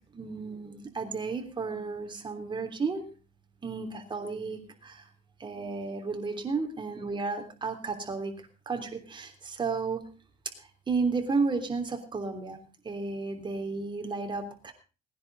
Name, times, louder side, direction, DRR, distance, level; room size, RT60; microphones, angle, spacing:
voice 1, 0.1-3.0 3.6-5.0 5.4-8.3 8.7-10.0 10.9-12.6 12.8-14.7, right 4 dB, 30° right, 4 dB, 3.3 m, -32 dB
19.5 x 10.5 x 4.0 m, 0.34 s
cardioid pair, 110°, 17 cm